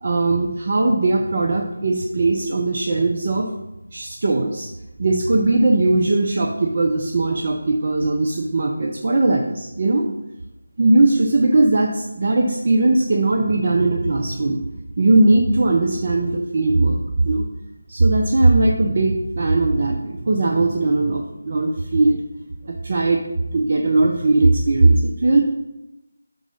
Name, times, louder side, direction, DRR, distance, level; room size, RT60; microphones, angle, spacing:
voice 1, 0.0-3.5 3.9-4.7 5.0-10.1 10.8-14.6 15.0-17.4 17.9-22.2 22.7-23.2 23.5-25.4, right 2 dB, 40° right, 1 dB, 0.6 m, -19 dB
6.0 x 3.9 x 5.6 m, 0.95 s
figure-of-eight pair, 160°, 0 cm